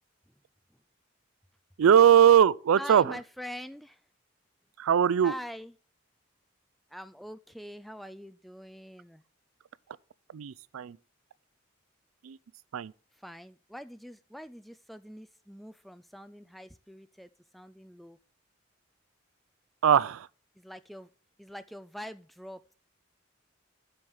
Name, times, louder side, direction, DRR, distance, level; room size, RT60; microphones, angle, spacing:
voice 1, 1.8-3.2 4.8-5.3 10.3-11.0 12.2-12.4 12.7-12.9 19.8-20.3, right 8 dB, 90° right, 0.4 m, -21 dB
voice 2, 2.7-4.0 5.2-5.7 6.9-9.2 13.1-18.2 20.6-21.1 21.4-22.7, equal, ahead, 0.3 m, -44 dB
7.6 x 6.4 x 7.0 m
head